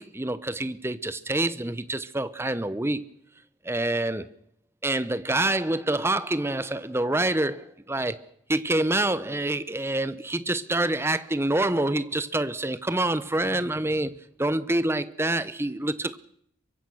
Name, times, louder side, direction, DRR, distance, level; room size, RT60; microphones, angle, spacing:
voice 1, 0.0-3.1 3.6-4.3 4.8-8.2 8.5-14.1 14.4-16.2, right 1 dB, 10° right, 0.8 m, -26 dB
23.5 x 22.0 x 6.3 m
head